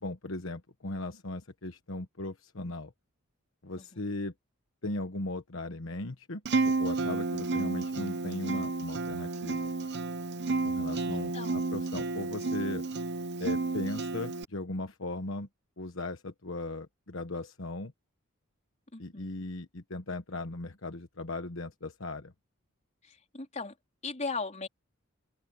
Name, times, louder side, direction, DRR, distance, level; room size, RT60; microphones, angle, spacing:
voice 1, 0.0-2.9 3.6-4.3 4.8-9.7 10.6-12.8 13.4-15.5 15.8-17.9 19.0-22.3, left 2 dB, 70° left, 1.3 m, -38 dB
Acoustic guitar, 6.5-14.4, right 3 dB, 55° right, 1.0 m, -31 dB
voice 2, 11.1-11.7 18.9-19.5 23.0-23.7 24.0-24.7, left 3 dB, 35° left, 4.0 m, -38 dB
open air
head